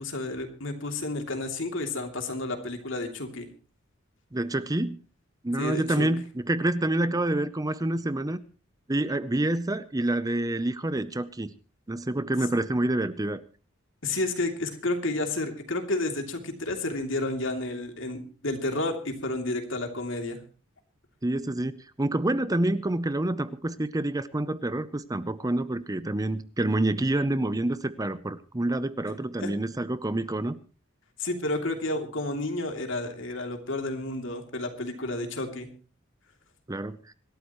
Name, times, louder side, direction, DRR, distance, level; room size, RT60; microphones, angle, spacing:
voice 1, 0.0-3.5 5.6-6.1 14.0-20.4 29.1-29.5 31.2-35.7, left 2 dB, 65° left, 5 dB, 2.9 m, -31 dB
voice 2, 4.3-5.0 5.4-8.4 8.9-11.5 11.9-13.4 21.2-30.6 36.7-37.1, right 1 dB, 20° right, 14 dB, 0.6 m, -27 dB
26.0 x 13.0 x 3.1 m, 0.35 s
head